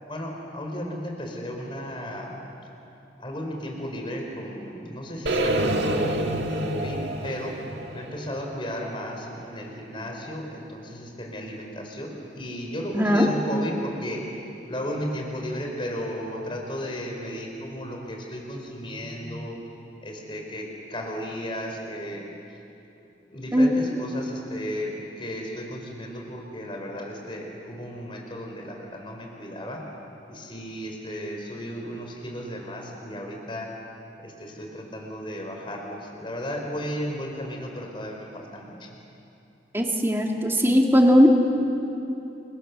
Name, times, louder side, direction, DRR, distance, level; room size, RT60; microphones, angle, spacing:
voice 1, 0.1-2.3 3.2-7.6 7.9-14.3 14.7-19.6 20.0-22.3 23.3-29.8 30.3-33.7 34.2-39.0, equal, 30° left, 1 dB, 3.9 m, -34 dB
sound 1, 5.3-9.3, right 1 dB, 75° right, 1.8 m, -28 dB
voice 2, 12.9-13.3 23.5-23.8 39.7-41.3, equal, 15° right, 1 dB, 2.4 m, -18 dB
30.0 x 24.5 x 6.9 m, 2.9 s
head